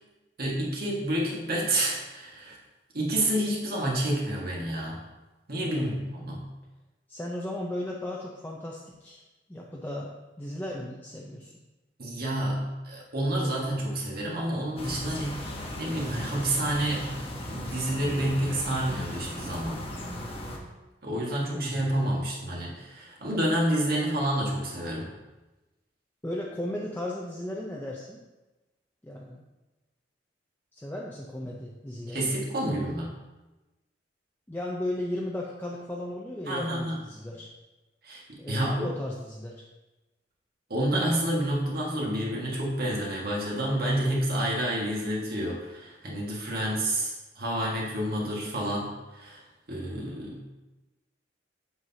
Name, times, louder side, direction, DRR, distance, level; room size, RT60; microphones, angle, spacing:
voice 1, 0.4-2.6 2.9-5.0 5.5-6.4 12.0-15.5 15.8-17.2 17.5-19.9 21.0-25.1 32.1-33.1 36.5-37.0 38.0-38.9 40.7-49.4 49.7-50.4, right 1 dB, 55° right, -3 dB, 1.7 m, -29 dB
voice 2, 5.7-6.1 7.1-9.2 9.5-10.1 10.4-11.5 21.5-21.9 26.2-28.2 29.0-29.5 30.7-32.4 34.5-37.5 38.4-39.6, left 1 dB, 10° left, -3 dB, 0.6 m, -35 dB
sound 1, 14.8-20.6, left 1 dB, 35° left, 1.0 m, -37 dB
7.9 x 5.8 x 2.8 m, 1.1 s
head